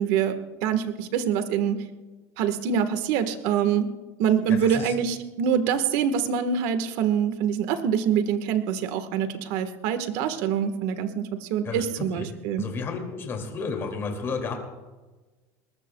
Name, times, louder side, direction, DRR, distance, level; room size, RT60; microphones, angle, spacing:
voice 1, 0.0-1.8 2.4-3.9 4.2-12.6, right 8 dB, 65° right, 9 dB, 1.4 m, -25 dB
voice 2, 4.5-4.9 11.6-12.3 12.6-14.6, left 4 dB, 25° left, 2 dB, 2.4 m, -32 dB
21.5 x 20.0 x 2.3 m, 1.2 s
cardioid pair, 160°, 9 cm